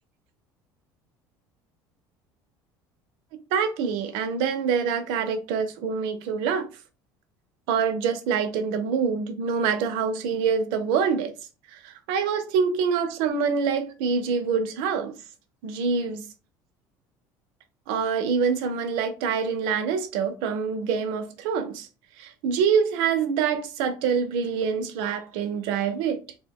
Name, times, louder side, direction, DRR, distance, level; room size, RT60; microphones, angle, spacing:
voice 1, 3.5-6.7 7.7-11.3 11.7-15.2 15.6-16.3 17.9-21.9 22.2-26.2, right 6 dB, 75° right, 0.5 m, -25 dB
2.6 x 2.1 x 3.4 m
cardioid pair, 165°, 8 cm